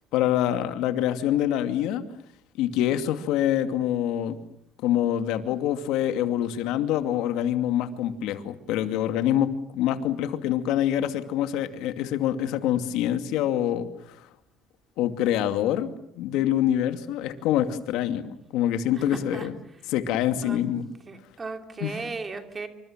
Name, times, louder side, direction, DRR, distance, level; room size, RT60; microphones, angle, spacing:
voice 1, 0.1-2.1 2.6-4.4 4.8-14.3 15.0-19.5 19.9-20.9 21.8-22.0, left 11 dB, 80° left, 9 dB, 2.5 m, -25 dB
voice 2, 18.9-19.5 20.4-20.6 21.1-22.7, right 3 dB, 20° right, 6 dB, 2.8 m, -36 dB
28.0 x 25.5 x 7.5 m, 0.73 s
cardioid pair, 155°, 0 cm